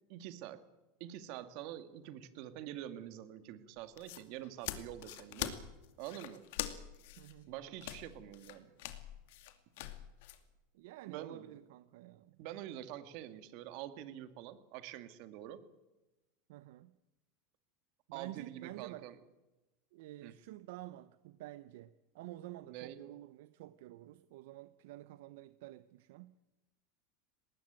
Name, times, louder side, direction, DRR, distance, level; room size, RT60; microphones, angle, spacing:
voice 1, 0.1-0.6 1.0-5.5 6.0-6.4 7.5-8.7 11.1-11.6 12.4-15.6 18.1-19.2 20.2-20.3 22.7-23.0, right 12 dB, 55° right, 2.1 m, -46 dB
sound 1, 3.8-10.4, left 13 dB, 70° left, 2.3 m, -44 dB
voice 2, 7.2-7.5 10.7-12.4 16.5-17.0 18.1-19.1 19.9-26.4, right 16 dB, 70° right, 0.8 m, -50 dB
20.0 x 19.0 x 8.9 m
supercardioid pair, 140°, 0 cm